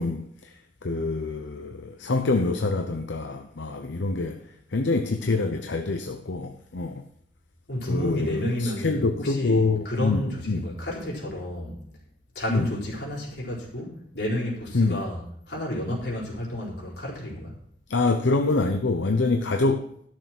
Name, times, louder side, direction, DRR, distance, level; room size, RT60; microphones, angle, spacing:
voice 1, 0.0-7.0 7.9-10.7 12.5-12.7 14.7-15.0 17.9-19.9, left 3 dB, 85° left, 0.8 m, -26 dB
voice 2, 7.7-11.8 12.3-15.2 15.5-17.6, left 1 dB, 65° left, 4.5 m, -31 dB
12.5 x 6.7 x 6.0 m
head